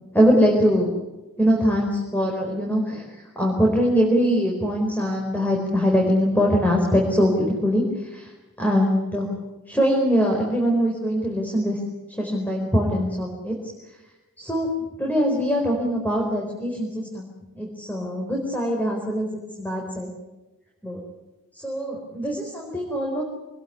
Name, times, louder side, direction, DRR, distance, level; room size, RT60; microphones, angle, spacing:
voice 1, 0.1-0.9 1.4-3.0 3.3-7.8 8.1-8.3 8.6-9.3 9.7-11.8 12.2-13.6 14.4-14.7 15.0-17.3 17.5-19.3 19.6-20.1 20.8-21.0 21.6-23.2, equal, 10° left, -1 dB, 4.8 m, -22 dB
26.5 x 20.5 x 9.5 m, 1.1 s
head